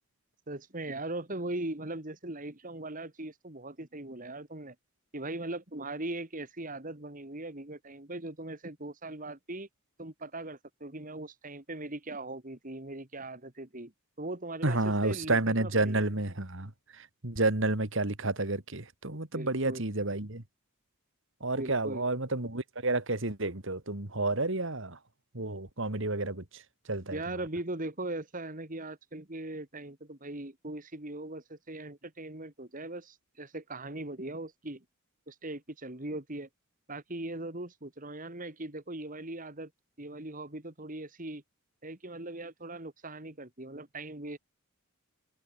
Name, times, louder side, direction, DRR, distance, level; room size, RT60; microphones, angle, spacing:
voice 1, 0.5-4.8 5.1-9.7 10.0-13.9 14.2-16.0 19.3-19.9 21.6-22.1 27.1-34.8 35.3-36.5 36.9-39.7 40.0-41.4 41.8-44.4, right 2 dB, 40° right, 2.6 m, -40 dB
voice 2, 14.6-16.7 17.0-20.4 21.4-25.0 25.3-26.6 26.9-27.2, right 2 dB, 60° right, 2.6 m, -30 dB
head